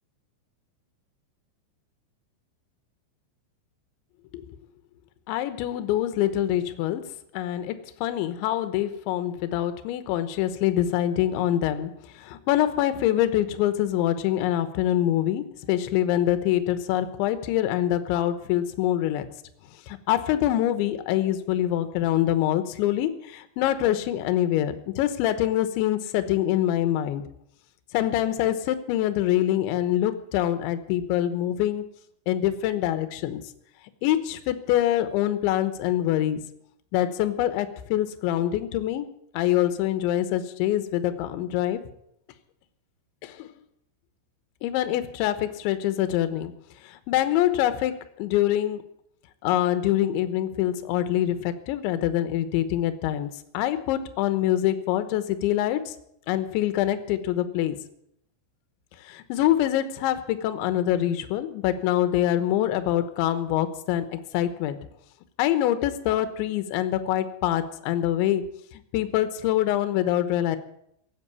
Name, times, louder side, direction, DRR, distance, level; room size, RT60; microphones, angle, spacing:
voice 1, 5.3-7.0 7.3-19.3 19.9-27.2 27.9-31.8 32.3-33.4 34.0-36.4 36.9-39.1 39.3-41.8 43.2-43.5 44.6-46.5 46.8-47.9 48.2-48.8 49.4-56.0 56.3-57.8 59.0-64.8 65.4-68.4 68.9-70.6, left 12 dB, 75° left, 11 dB, 3.3 m, -25 dB
16.5 x 8.6 x 9.8 m, 0.73 s
omnidirectional pair, 5.6 m